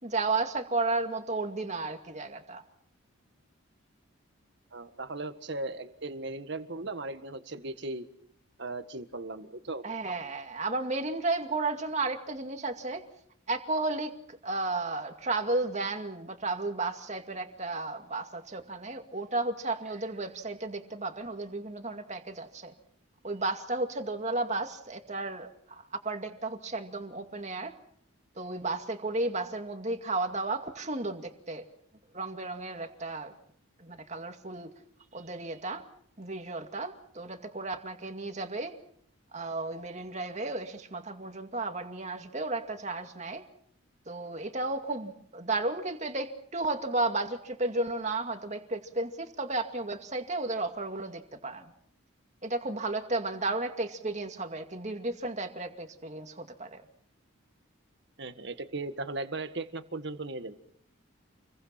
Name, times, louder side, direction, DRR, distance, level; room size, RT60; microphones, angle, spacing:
voice 1, 0.0-2.6 9.8-13.0 13.5-22.7 23.2-27.7 28.4-31.6 32.1-33.3 33.8-34.7 35.1-35.8 36.2-38.8 39.3-43.4 44.1-51.7 52.4-56.8, right 2 dB, 35° right, 6 dB, 2.3 m, -33 dB
voice 2, 4.7-8.1 8.6-9.8 58.2-60.5, right 2 dB, 55° right, 9 dB, 1.7 m, -37 dB
28.5 x 22.5 x 5.8 m, 0.65 s
head